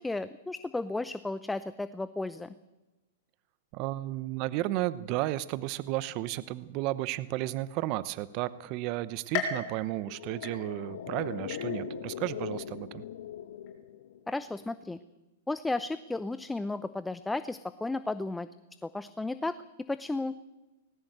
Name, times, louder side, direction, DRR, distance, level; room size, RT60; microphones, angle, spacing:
voice 1, 0.0-2.5 14.3-15.0 15.5-18.5 18.8-19.6 19.9-20.3, left 2 dB, 5° left, 13 dB, 0.7 m, -33 dB
voice 2, 3.7-13.0, right 16 dB, 45° right, 16 dB, 0.8 m, -33 dB
sound 1, 9.3-11.0 11.5-12.1 12.6-12.7 13.7-13.8, left 6 dB, 45° left, 7.0 m, -37 dB
sound 2, 10.0-14.6 14.8-14.9, left 8 dB, 75° left, 1.4 m, -40 dB
19.0 x 19.0 x 8.0 m, 1.1 s
hypercardioid pair, 130°, 0 cm